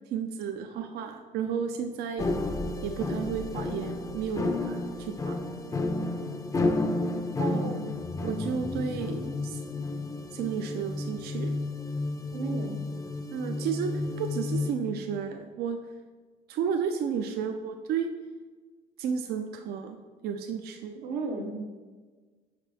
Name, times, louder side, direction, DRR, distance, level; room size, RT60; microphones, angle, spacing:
voice 1, 0.1-2.3 2.8-5.4 7.4-7.8 8.2-9.6 10.3-11.6 13.3-13.9 14.2-15.8 16.5-18.1 19.0-20.0 20.2-21.0, right 7 dB, 70° right, 5 dB, 0.5 m, -32 dB
sound 1, 2.2-14.7, left 2 dB, 20° left, 0.5 m, -31 dB
voice 2, 6.8-7.8 12.3-12.8 21.0-21.6, right 3 dB, 85° right, 3 dB, 0.9 m, -36 dB
5.3 x 5.2 x 4.1 m, 1.4 s
cardioid pair, 110°, 17 cm